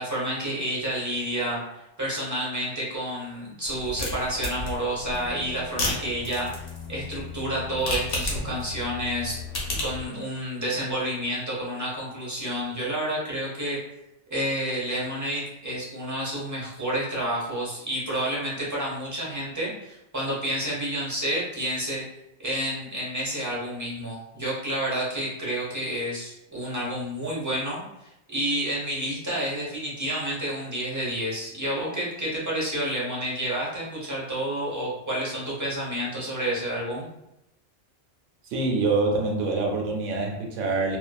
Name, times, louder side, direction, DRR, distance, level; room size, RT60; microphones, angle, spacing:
voice 1, 0.0-6.6 6.9-9.4 9.8-13.8 14.3-22.0 22.4-37.1, right 1 dB, 20° right, -6 dB, 0.6 m, -30 dB
sound 1, 3.6-10.1, left 2 dB, 80° left, 1.1 m, -33 dB
voice 2, 38.5-41.0, right 3 dB, 80° right, 0 dB, 0.9 m, -25 dB
2.5 x 2.2 x 2.3 m, 0.88 s
omnidirectional pair, 1.3 m